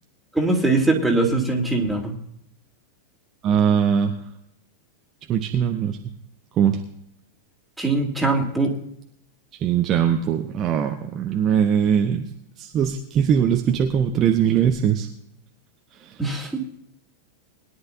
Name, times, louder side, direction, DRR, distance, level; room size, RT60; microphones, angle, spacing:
voice 1, 0.3-2.2 7.8-8.7 16.2-16.6, right 2 dB, 5° right, 0 dB, 3.0 m, -21 dB
voice 2, 3.4-4.1 5.3-6.0 6.6-6.8 9.6-12.2 12.6-15.1, right 8 dB, 30° right, 4 dB, 1.0 m, -21 dB
21.5 x 11.0 x 2.7 m, 0.73 s
figure-of-eight pair, 90°, 0 cm